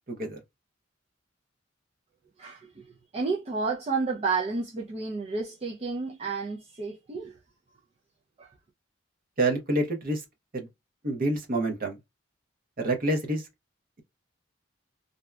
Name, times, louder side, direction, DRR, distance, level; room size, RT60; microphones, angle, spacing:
voice 1, 0.1-0.4 9.4-10.2 10.5-10.7 11.0-12.0 12.8-13.5, right 1 dB, 45° right, 0.8 m, -27 dB
voice 2, 2.4-7.4 8.4-8.5, right 4 dB, 30° right, 0.4 m, -31 dB
2.7 x 2.2 x 2.2 m
head